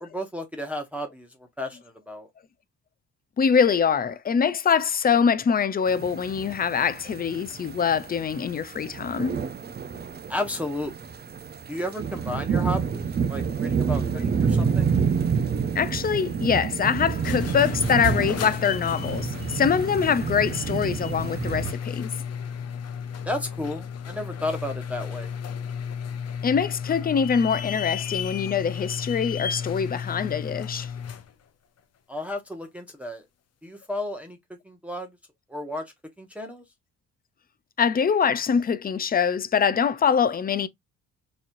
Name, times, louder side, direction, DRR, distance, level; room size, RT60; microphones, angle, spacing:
voice 1, 0.0-1.3 1.6-2.3 10.3-11.1 11.7-14.9 23.3-25.3 32.1-33.2 33.6-34.4 34.6-35.1 35.5-36.6, left 1 dB, 5° right, 0.9 m, -33 dB
voice 2, 3.4-9.4 15.7-22.1 26.4-30.9 37.8-40.7, left 7 dB, 30° left, 0.5 m, -24 dB
sound 1, 5.9-21.7, right 6 dB, 35° right, 0.6 m, -28 dB
sound 2, 17.1-31.3, left 7 dB, 55° left, 0.8 m, -33 dB
4.2 x 3.0 x 2.6 m
cardioid pair, 90°, 30 cm